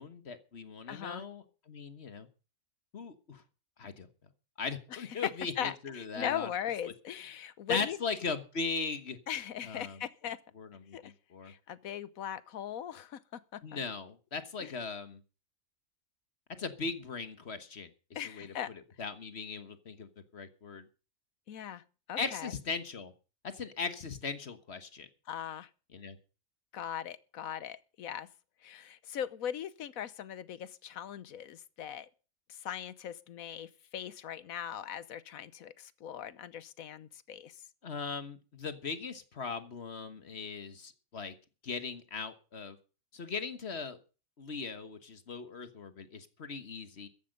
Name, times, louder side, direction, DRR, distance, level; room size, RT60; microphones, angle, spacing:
voice 1, 0.0-2.3 2.9-3.4 3.8-4.1 4.6-6.5 7.7-9.2 9.6-10.0 10.5-11.5 13.6-15.2 16.6-20.9 22.2-23.1 23.4-25.1 25.9-26.2 37.8-41.3 41.6-42.8 43.1-44.0 44.4-47.1, left 5 dB, 50° left, 1.5 m, -39 dB
voice 2, 0.9-1.2 4.9-5.3 5.6-8.0 9.3-10.4 10.9-11.1 11.4-13.8 14.6-14.7 18.1-18.7 21.5-22.5 25.3-25.7 26.7-28.3 28.6-32.1 32.5-37.6, left 9 dB, 90° left, 1.3 m, -39 dB
14.5 x 10.5 x 5.3 m
omnidirectional pair, 1.4 m